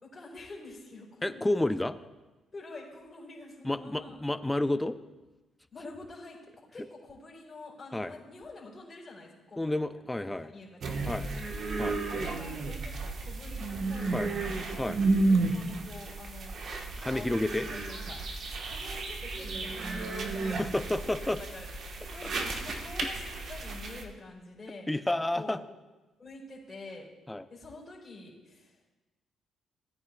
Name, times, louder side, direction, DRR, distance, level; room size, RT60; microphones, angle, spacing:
voice 1, 0.0-1.6 2.5-4.2 5.7-11.7 12.1-14.6 15.3-16.6 17.1-18.2 18.7-20.7 21.0-24.9 25.3-25.6 26.2-27.1 27.5-28.9, left 2 dB, 30° left, -5 dB, 3.7 m, -47 dB
voice 2, 1.2-2.0 3.6-5.0 7.9-8.1 9.6-10.5 11.0-11.2 11.8-12.0 14.1-14.3 14.8-15.0 17.0-17.7 20.5-21.4 24.9-25.6 27.3-27.4, left 1 dB, 10° left, 12 dB, 0.5 m, -30 dB
sound 1, 10.8-24.0, right 3 dB, 60° right, 1.2 m, -32 dB
17.5 x 9.6 x 2.3 m, 1.1 s
cardioid pair, 90°, 0 cm